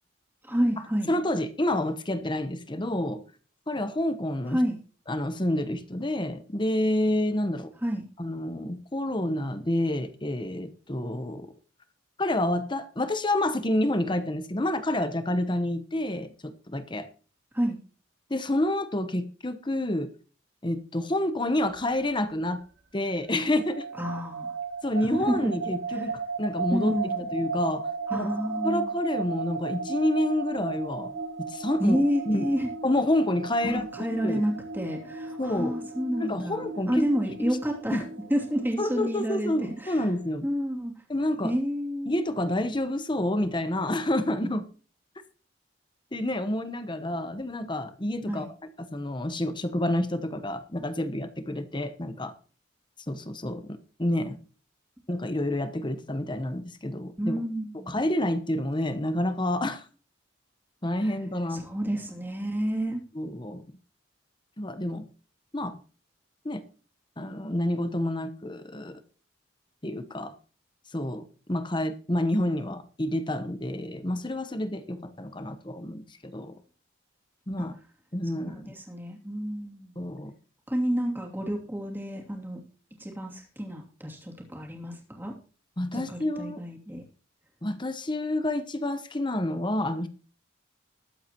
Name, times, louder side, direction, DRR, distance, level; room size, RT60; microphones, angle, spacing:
voice 1, 0.4-1.1 4.5-4.8 7.8-8.0 17.5-17.8 24.0-24.5 25.1-25.5 25.9-26.0 26.7-27.3 28.1-28.9 31.8-32.7 33.6-40.0 40.4-40.9 41.4-42.1 48.3-48.5 57.2-58.0 61.5-63.0 77.6-77.7 78.3-79.9 80.7-82.6 83.0-85.3 85.9-87.0, equal, 10° right, 0 dB, 2.6 m, -29 dB
voice 2, 1.1-3.2 3.7-4.6 5.1-7.7 8.2-11.5 12.2-17.1 18.3-20.1 20.6-22.6 22.9-23.9 24.8-27.0 27.3-28.3 28.6-31.1 31.5-32.0 32.3-32.5 32.8-34.4 35.4-35.8 36.2-37.0 37.4-37.6 37.9-38.0 38.8-40.5 41.1-41.5 42.1-44.7 46.1-48.5 48.8-52.3 53.1-54.4 55.1-57.4 57.9-59.8 60.8-61.6 63.1-63.6 64.6-65.1 65.5-65.8 66.4-66.6 67.2-69.0 69.8-70.3 70.9-76.6 77.5-77.7 78.1-78.7 80.0-80.3 85.8-86.6 87.6-90.1, left 1 dB, 25° left, 11 dB, 1.0 m, -28 dB
sound 1, 23.5-40.3, right 4 dB, 70° right, 6.9 m, -36 dB
21.0 x 8.1 x 3.0 m, 0.39 s
head